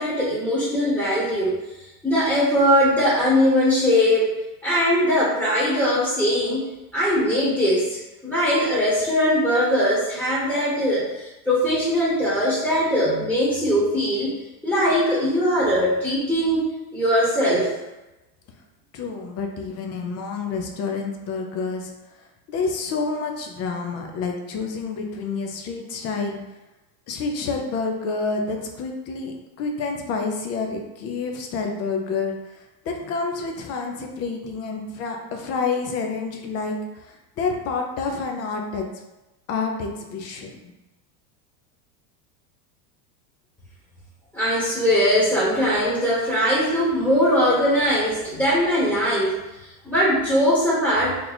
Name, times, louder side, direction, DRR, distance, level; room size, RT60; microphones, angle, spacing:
voice 1, 0.0-1.6 2.0-4.3 4.6-14.3 14.6-16.6 16.9-17.7 44.3-49.4 49.8-51.2, equal, ahead, -9 dB, 1.0 m, -21 dB
voice 2, 18.9-21.9 22.5-26.4 27.1-38.9 39.5-40.8, left 4 dB, 35° left, 3 dB, 0.5 m, -28 dB
3.1 x 2.3 x 3.9 m, 1.0 s
supercardioid pair, 130°, 49 cm